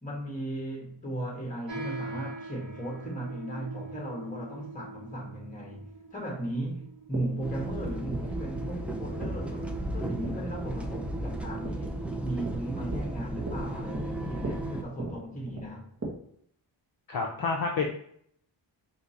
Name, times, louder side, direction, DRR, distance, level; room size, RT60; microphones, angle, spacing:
voice 1, 0.0-15.9, right 1 dB, 15° left, 1.3 m, -36 dB
sound 1, 1.7-9.5, right 3 dB, 75° right, 1.2 m, -44 dB
sound 2, 5.1-16.1, right 2 dB, 35° right, 1.2 m, -42 dB
sound 3, 7.4-14.8, right 1 dB, 5° right, 0.4 m, -34 dB
voice 2, 17.1-17.9, left 4 dB, 50° left, 0.6 m, -29 dB
4.9 x 2.8 x 2.8 m
wide cardioid pair, 120°, 45 cm